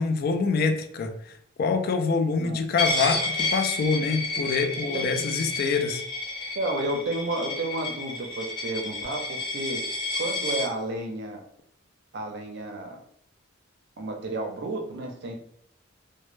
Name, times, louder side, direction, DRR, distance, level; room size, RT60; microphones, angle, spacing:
voice 1, 0.0-6.0, left 4 dB, 50° left, 6 dB, 0.3 m, -26 dB
Coin (dropping), 2.8-10.7, left 2 dB, 25° left, 0.7 m, -31 dB
voice 2, 6.5-9.8 10.2-11.4 12.1-13.0 14.0-15.4, right 2 dB, 60° right, 3 dB, 0.5 m, -31 dB
2.1 x 2.1 x 3.0 m, 0.66 s
head